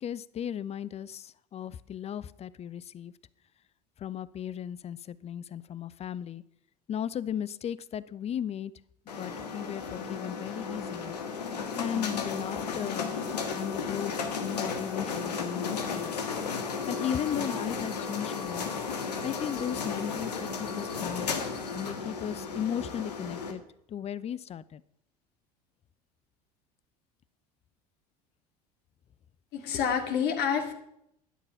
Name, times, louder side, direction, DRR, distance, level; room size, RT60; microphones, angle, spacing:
voice 1, 0.0-3.1 4.0-6.4 6.9-8.7 9.2-11.2 11.7-13.1 13.5-14.1 14.4-16.2 16.9-18.7 19.2-21.4 21.7-23.6 23.9-24.8, left 9 dB, 30° left, 0.6 m, -36 dB
sound 1, 9.1-23.5, left 5 dB, 80° left, 1.7 m, -34 dB
voice 2, 29.5-30.7, left 7 dB, 55° left, 2.3 m, -28 dB
12.5 x 9.9 x 5.8 m
hypercardioid pair, 70°, 20 cm